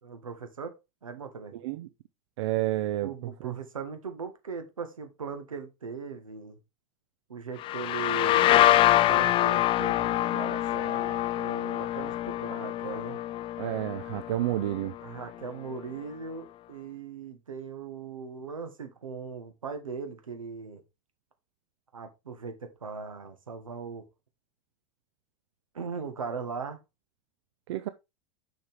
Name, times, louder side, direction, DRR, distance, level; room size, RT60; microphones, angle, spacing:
voice 1, 0.0-1.6 3.0-6.6 7.3-13.2 15.0-20.8 21.9-24.1 25.7-26.8, right 5 dB, 80° right, 1.6 m, -39 dB
voice 2, 2.4-3.6 13.6-14.9 27.7-27.9, right 15 dB, 60° right, 0.5 m, -30 dB
sound 1, 7.6-15.2, left 14 dB, 30° left, 0.5 m, -25 dB
6.5 x 5.9 x 3.5 m
figure-of-eight pair, 90°, 17 cm